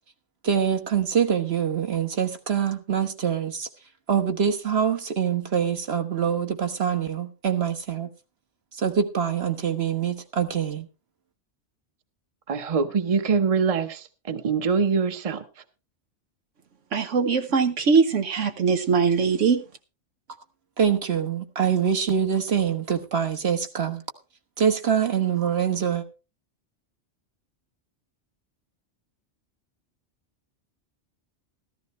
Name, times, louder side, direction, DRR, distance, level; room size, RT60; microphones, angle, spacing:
voice 1, 0.4-3.7 4.1-8.1 8.8-10.9 20.8-24.0 24.6-26.0, right 7 dB, 55° right, 1.5 m, -24 dB
voice 2, 12.5-15.4, right 5 dB, 30° right, 0.9 m, -24 dB
voice 3, 16.9-19.6, right 5 dB, 85° right, 1.3 m, -21 dB
14.5 x 14.0 x 3.2 m
omnidirectional pair, 1.2 m